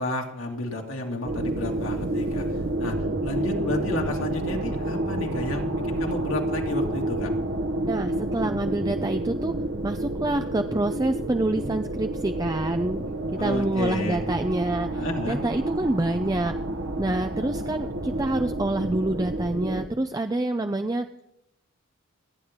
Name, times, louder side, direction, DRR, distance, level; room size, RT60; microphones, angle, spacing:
voice 1, 0.0-2.5 2.8-7.3 13.4-14.2 14.9-15.4, left 2 dB, 65° left, 1 dB, 2.2 m, -31 dB
sound 1, 1.2-19.9, right 1 dB, 60° right, 1.1 m, -29 dB
voice 2, 7.8-9.5 9.8-13.0 13.4-16.5 17.0-21.1, right 2 dB, 15° right, 7 dB, 0.4 m, -27 dB
28.5 x 9.6 x 3.7 m, 0.85 s
head